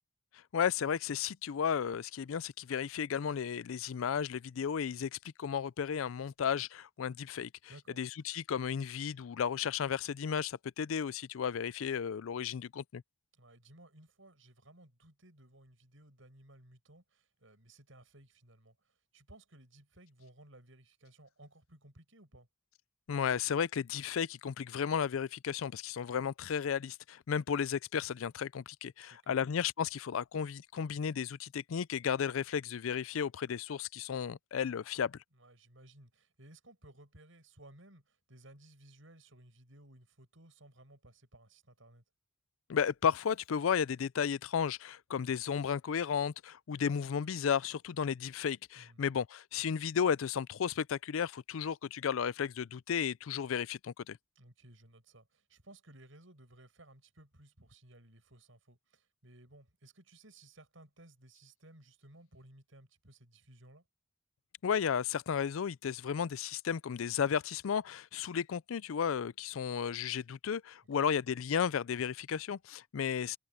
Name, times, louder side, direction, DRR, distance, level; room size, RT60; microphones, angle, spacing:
voice 1, 0.5-7.5 8.0-13.0 23.1-35.2 42.7-54.2 64.6-73.4, left 7 dB, 85° left, 0.4 m, -34 dB
voice 2, 7.7-8.0 13.3-22.5 29.0-29.4 35.3-42.0 48.8-49.0 54.4-63.9 71.0-71.1, right 1 dB, 75° right, 7.0 m, -58 dB
head